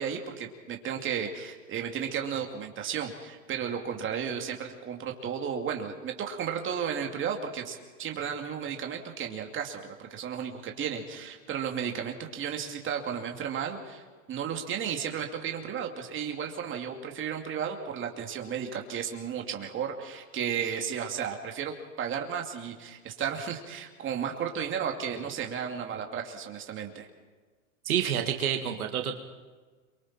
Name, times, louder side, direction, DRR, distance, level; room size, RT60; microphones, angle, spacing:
voice 1, 0.0-27.1, right 7 dB, 30° right, 3 dB, 2.7 m, -34 dB
voice 2, 27.9-29.2, right 9 dB, 85° right, 4 dB, 2.2 m, -28 dB
29.5 x 24.0 x 4.4 m, 1.4 s
hypercardioid pair, 120°, 42 cm